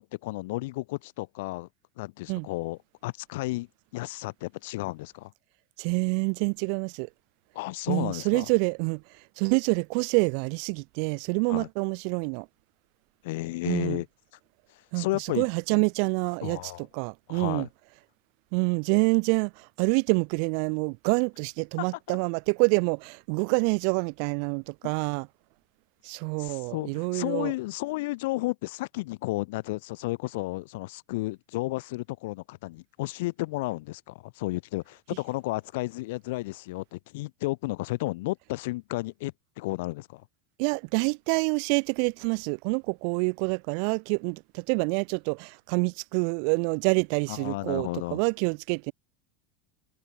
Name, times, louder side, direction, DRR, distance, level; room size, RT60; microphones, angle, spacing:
voice 1, 0.0-1.7 2.0-3.7 3.9-5.3 7.5-8.5 11.5-11.7 13.2-14.1 15.0-15.8 16.4-16.8 17.3-17.7 21.8-22.2 24.8-24.9 26.4-40.2 47.3-48.2, left 21 dB, 60° left, 2.2 m, -33 dB
voice 2, 5.8-7.1 7.9-9.0 9.4-12.5 13.6-14.0 14.9-17.7 18.5-25.3 26.0-27.5 40.6-48.9, right 40 dB or more, 45° right, 3.4 m, -27 dB
supercardioid pair, 180°, 0 cm